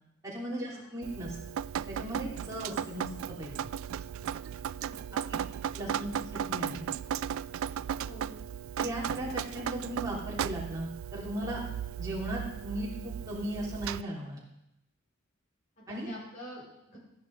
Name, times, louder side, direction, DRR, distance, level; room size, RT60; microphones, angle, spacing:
voice 1, 0.2-1.3 1.9-3.5 5.7-6.8 8.8-11.6 12.0-14.4 15.9-16.1, right 1 dB, 15° right, -6 dB, 3.4 m, -37 dB
Drip, 1.0-14.0, right 9 dB, 75° right, 0.3 m, -36 dB
voice 2, 4.8-5.2 5.8-5.9 8.0-8.4 15.8-17.0, equal, 40° left, -6 dB, 5.3 m, -47 dB
13.0 x 10.5 x 4.1 m, 0.84 s
head